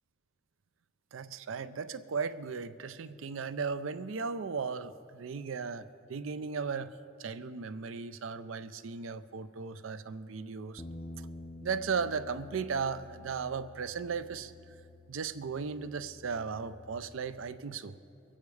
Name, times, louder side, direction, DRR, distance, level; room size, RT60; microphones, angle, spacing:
voice 1, 1.1-6.9 7.2-10.8 11.6-14.5 15.1-18.0, right 5 dB, 90° right, 13 dB, 0.5 m, -36 dB
sound 1, 10.8-17.0, left 2 dB, 20° left, 0.5 m, -49 dB
23.0 x 8.7 x 4.8 m, 2.9 s
head